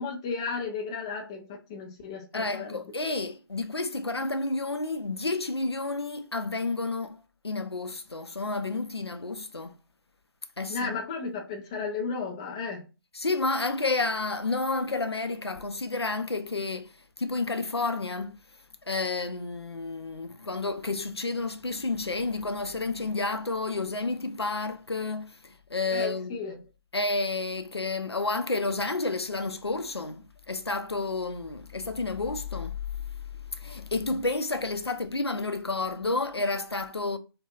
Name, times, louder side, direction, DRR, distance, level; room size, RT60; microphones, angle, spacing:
voice 1, 0.0-2.8 10.7-12.9 25.9-26.5, left 4 dB, 10° left, 0.3 m, -34 dB
voice 2, 2.3-9.8 10.6-11.0 13.1-16.9 17.2-18.4 18.9-26.4 26.9-32.8 33.5-37.2, left 3 dB, 90° left, 0.5 m, -30 dB
4.7 x 2.2 x 2.3 m
figure-of-eight pair, 145°, 13 cm